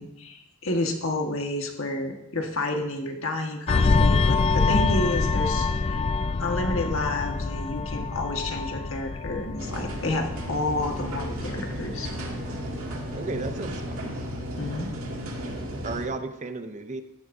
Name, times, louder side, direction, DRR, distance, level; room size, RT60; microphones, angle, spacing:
voice 1, 0.0-6.0 6.4-12.1 14.6-14.9, left 2 dB, 65° left, 2 dB, 1.6 m, -30 dB
sound 1, 3.7-12.7 13.1-13.3, left 4 dB, 30° left, 0.3 m, -25 dB
sound 2, 9.6-16.1, equal, 75° right, 2.2 m, -34 dB
voice 2, 13.2-14.2 15.8-17.0, right 3 dB, 35° right, 9 dB, 0.7 m, -33 dB
15.0 x 12.0 x 2.7 m, 0.89 s
head